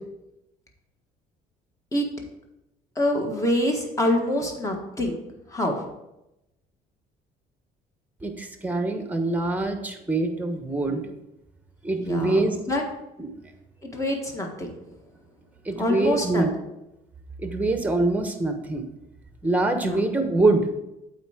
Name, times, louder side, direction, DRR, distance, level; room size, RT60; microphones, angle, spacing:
voice 1, 3.0-5.2 5.5-5.8 10.9-11.0 12.0-12.8 13.8-14.7 15.8-16.4 19.8-20.0, left 1 dB, 20° left, 2 dB, 1.6 m, -26 dB
voice 2, 8.2-11.0 11.8-12.6 13.2-13.5 15.6-16.5 17.4-18.9 19.4-20.7, right 2 dB, 10° right, 6 dB, 1.1 m, -24 dB
8.0 x 4.5 x 4.9 m, 0.91 s
cardioid pair, 110°, 17 cm